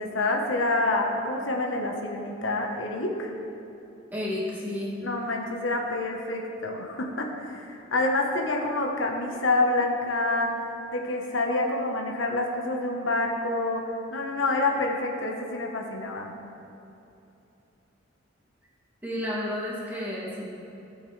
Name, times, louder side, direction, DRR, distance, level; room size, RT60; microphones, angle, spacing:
voice 1, 0.0-3.3 5.0-10.5 10.9-13.8 14.1-16.3, left 2 dB, 75° left, 1 dB, 1.2 m, -27 dB
voice 2, 4.1-5.0 19.0-20.5, left 1 dB, 10° right, -7 dB, 2.3 m, -31 dB
16.5 x 7.4 x 3.3 m, 2.9 s
head